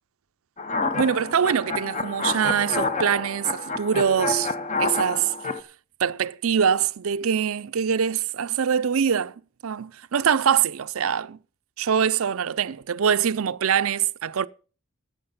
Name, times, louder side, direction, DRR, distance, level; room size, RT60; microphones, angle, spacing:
sound 1, 0.6-5.6, left 3 dB, 30° left, 0.8 m, -28 dB
voice 1, 1.0-5.3 6.0-9.3 9.6-11.4 11.8-14.5, right 7 dB, 75° right, 0.5 m, -23 dB
14.5 x 8.5 x 5.2 m
head